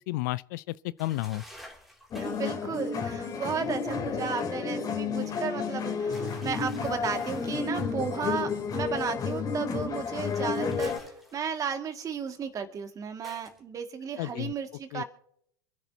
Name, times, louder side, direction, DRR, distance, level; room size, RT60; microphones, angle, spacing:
voice 1, 0.1-1.4 14.2-14.5 14.9-15.0, left 19 dB, 60° left, 0.4 m, -32 dB
sound 1, 1.0-2.6 6.1-7.7 10.0-11.8 13.2-13.6, equal, ahead, 2.7 m, -50 dB
sound 2, 2.1-11.0, left 5 dB, 35° left, 3.0 m, -31 dB
voice 2, 2.1-15.0, right 6 dB, 30° right, 2.0 m, -34 dB
27.0 x 10.5 x 2.8 m
hypercardioid pair, 85°, 11 cm